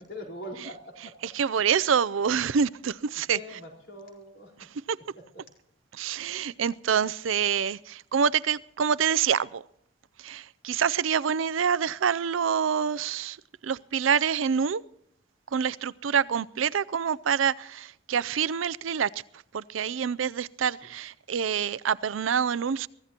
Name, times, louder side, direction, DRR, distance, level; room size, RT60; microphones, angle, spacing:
voice 1, 0.0-1.2 3.3-4.7 5.2-5.3, left 1 dB, 60° left, 4.5 m, -42 dB
voice 2, 1.2-3.4 4.9-5.0 6.0-9.6 10.2-13.4 13.6-14.8 15.5-19.1 19.5-22.9, right 7 dB, 85° right, 0.5 m, -26 dB
23.0 x 15.0 x 2.9 m
head